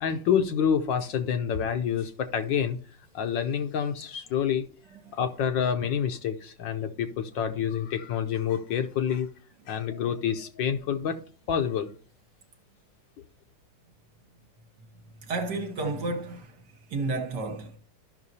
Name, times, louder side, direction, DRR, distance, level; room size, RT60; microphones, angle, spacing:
voice 1, 0.0-2.8 3.1-4.7 5.1-9.3 9.7-11.9, left 8 dB, 70° left, 1.3 m, -28 dB
voice 2, 15.2-17.8, right 3 dB, 55° right, 1.6 m, -32 dB
13.5 x 5.9 x 2.7 m
omnidirectional pair, 2.3 m